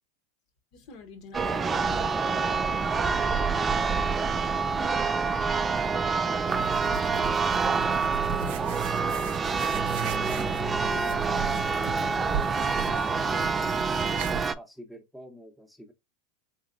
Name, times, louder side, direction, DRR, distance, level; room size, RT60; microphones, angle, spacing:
voice 1, 0.7-3.5 10.0-10.2, left 5 dB, 55° left, 1.0 m, -47 dB
Church bell, 1.3-14.5, right 5 dB, 20° right, 0.3 m, -27 dB
voice 2, 4.3-5.4 5.8-7.4 8.2-8.9 10.0-11.4 11.7-15.9, left 1 dB, ahead, 0.8 m, -44 dB
sound 1, 6.5-14.4, right 8 dB, 65° right, 0.6 m, -36 dB
4.0 x 2.9 x 2.6 m
hypercardioid pair, 110°, 0 cm